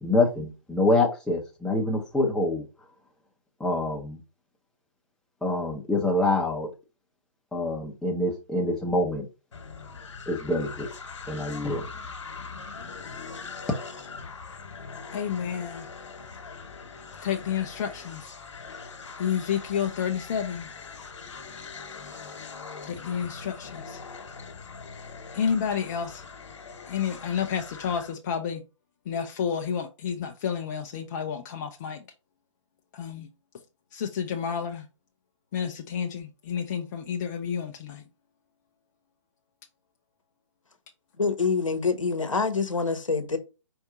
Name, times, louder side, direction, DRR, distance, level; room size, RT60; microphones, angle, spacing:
voice 1, 0.0-2.7 3.6-4.2 5.4-6.7 7.5-9.3 10.3-10.9 11.3-11.9, left 2 dB, 5° left, 0.8 m, -26 dB
sound 1, 9.5-28.1, left 5 dB, 65° left, 1.3 m, -42 dB
voice 2, 15.1-15.9 17.2-18.3 19.2-20.7 22.8-24.0 25.3-26.2 26.9-28.6 29.1-32.0 32.9-33.3 33.9-34.9 35.5-38.0, left 7 dB, 35° left, 0.5 m, -30 dB
voice 3, 41.2-43.4, left 4 dB, 85° left, 0.9 m, -26 dB
4.6 x 2.7 x 3.6 m
figure-of-eight pair, 130°, 16 cm